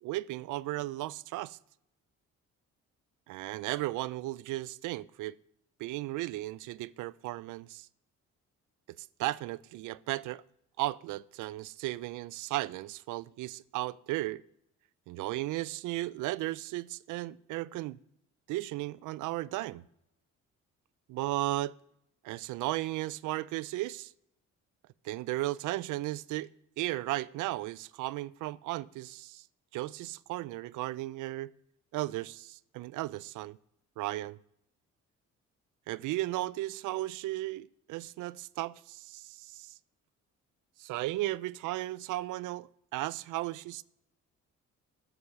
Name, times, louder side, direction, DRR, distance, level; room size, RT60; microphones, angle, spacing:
voice 1, 0.0-1.6 3.3-5.4 5.8-7.9 9.0-10.4 10.8-14.4 15.1-18.0 18.5-19.9 21.1-21.7 22.2-24.1 25.0-26.5 26.8-29.4 29.7-31.5 31.9-33.6 34.0-34.4 35.9-39.8 40.8-43.8, right 17 dB, 90° right, 0.5 m, -35 dB
15.0 x 7.1 x 6.4 m
cardioid pair, 90°, 30 cm